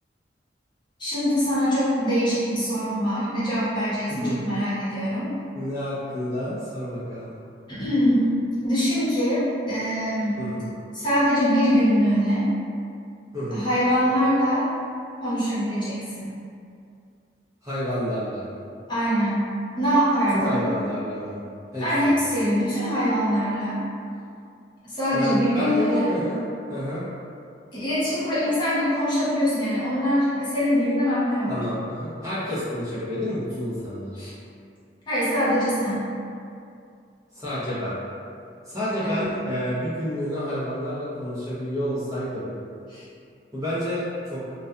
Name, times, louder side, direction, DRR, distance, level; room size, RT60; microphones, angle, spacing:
voice 1, 1.0-5.3 7.7-8.3 8.6-10.4 10.9-12.5 13.5-14.6 15.2-16.4 18.9-19.5 19.8-20.6 21.8-23.8 24.9-26.1 27.7-31.6 34.2-34.3 35.1-36.1 39.0-39.3 42.9-43.0, equal, 25° left, -12 dB, 0.9 m, -23 dB
voice 2, 4.1-4.6 5.5-7.3 10.4-10.6 13.3-13.6 17.6-18.4 20.3-21.3 21.7-21.8 25.1-26.4 26.7-27.0 31.5-34.1 37.3-37.9 38.7-42.5 43.5-44.4, equal, 20° right, -12 dB, 0.7 m, -29 dB
2.6 x 2.3 x 2.2 m, 2.4 s
head